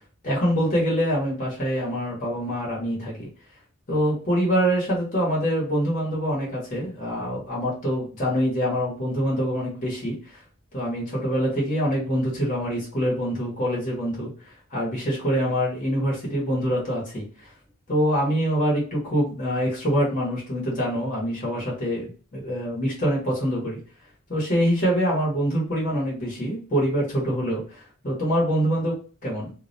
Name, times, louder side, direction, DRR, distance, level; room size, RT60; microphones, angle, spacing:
voice 1, 0.2-3.3 3.9-10.4 10.7-17.5 17.9-23.8 24.3-29.5, equal, 40° left, -5 dB, 0.9 m, -25 dB
2.3 x 2.1 x 2.5 m, 0.39 s
head